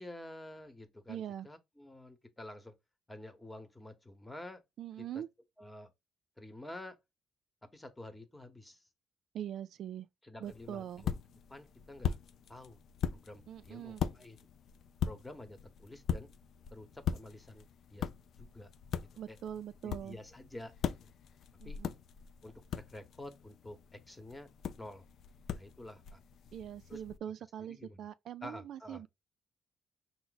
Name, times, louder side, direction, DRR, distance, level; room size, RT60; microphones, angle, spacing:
voice 1, 0.0-2.7 3.1-4.6 5.0-5.2 5.6-5.9 6.4-7.0 7.7-8.9 10.2-11.2 11.5-12.2 12.5-12.8 13.1-14.5 15.0-16.3 16.7-18.1 18.4-18.7 19.0-19.4 19.8-21.1 21.6-21.8 22.4-24.5 24.8-25.0 25.5-26.2 26.9-27.0 27.7-28.0 28.4-29.0, left 1 dB, 15° left, 1.0 m, -49 dB
voice 2, 1.1-1.5 4.8-5.3 9.3-10.1 10.4-11.1 13.5-14.1 19.2-20.2 21.6-21.9 26.5-29.1, right 10 dB, 70° right, 0.3 m, -42 dB
sound 1, 10.4-27.2, left 8 dB, 70° left, 0.4 m, -41 dB
5.7 x 2.1 x 4.0 m
cardioid pair, 90°, 0 cm